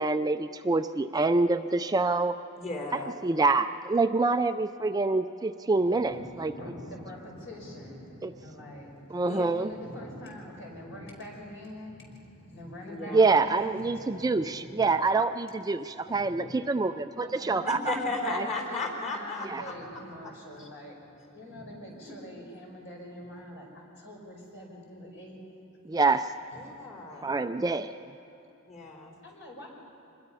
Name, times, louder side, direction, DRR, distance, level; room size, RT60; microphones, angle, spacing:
voice 1, 0.0-2.4 3.2-6.5 8.2-8.3 9.1-9.7 13.1-18.0 18.3-18.4 19.5-19.6 25.9-26.3 27.2-27.9, right 3 dB, 20° right, 9 dB, 0.4 m, -26 dB
voice 2, 2.6-3.1 9.2-9.4 12.9-13.3 17.9-19.7 20.6-20.7 22.0-22.3 26.5-27.3 28.7-29.1, left 2 dB, 35° left, 2 dB, 3.8 m, -35 dB
voice 3, 5.7-15.0 16.1-16.7 17.2-21.0 21.3-25.4 26.5-26.9 29.2-29.7, left 1 dB, 60° left, -1 dB, 5.5 m, -44 dB
25.5 x 21.0 x 5.6 m, 2.9 s
head